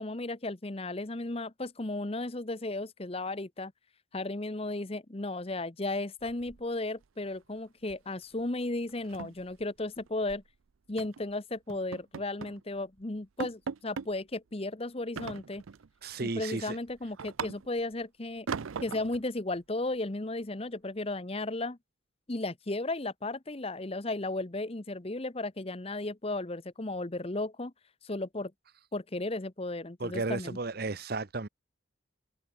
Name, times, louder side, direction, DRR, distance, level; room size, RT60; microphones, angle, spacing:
voice 1, 0.0-3.7 4.1-10.4 10.9-15.6 16.2-18.5 18.8-21.8 22.3-27.7 28.0-28.5 28.9-30.6, left 2 dB, 30° left, 0.9 m, -35 dB
sound 1, 6.2-7.0 7.3-7.6 7.9-8.1 8.4-8.5 8.9-10.5 11.0-11.2 11.7-12.6 13.0-13.1 13.4-14.1 15.2-15.9 16.3-17.9 18.5-19.2, right 6 dB, 90° right, 0.6 m, -40 dB
voice 2, 16.0-16.8 30.0-31.5, right 3 dB, 50° right, 0.9 m, -34 dB
head